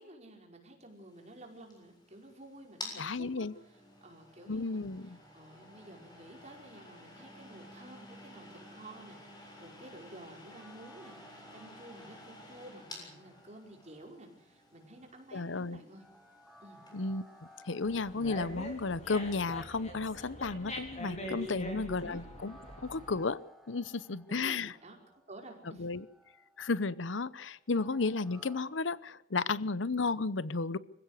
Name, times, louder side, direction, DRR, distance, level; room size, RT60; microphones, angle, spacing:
voice 1, 0.0-16.0 16.6-16.8 22.0-22.4 24.3-26.0, right 1 dB, 40° right, 2 dB, 5.2 m, -52 dB
sound 1, 1.0-19.7, left 2 dB, 25° left, 7.1 m, -52 dB
voice 2, 3.0-3.5 4.5-5.2 15.3-15.8 16.9-17.2 17.7-23.4 23.7-24.7 25.8-26.0 26.6-30.8, left 4 dB, 85° left, 18 dB, 0.8 m, -33 dB
sound 2, 10.4-28.6, equal, ahead, 2.9 m, -61 dB
Dog, 17.8-23.2, left 1 dB, 40° left, 4.1 m, -43 dB
25.5 x 16.0 x 8.2 m, 0.77 s
head